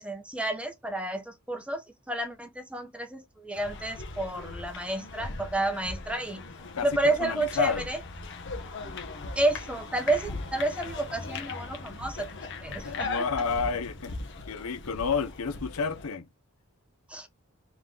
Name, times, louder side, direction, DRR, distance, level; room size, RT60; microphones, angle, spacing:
voice 1, 0.0-6.4 6.8-8.0 9.4-12.3 12.6-13.1 17.1-17.3, right 2 dB, 5° right, 0.7 m, -30 dB
sound 1, 3.5-16.1, left 3 dB, 60° left, 0.9 m, -39 dB
voice 2, 6.8-7.9 12.8-14.1 14.5-16.3, left 5 dB, 85° left, 0.7 m, -30 dB
3.6 x 3.0 x 3.6 m
head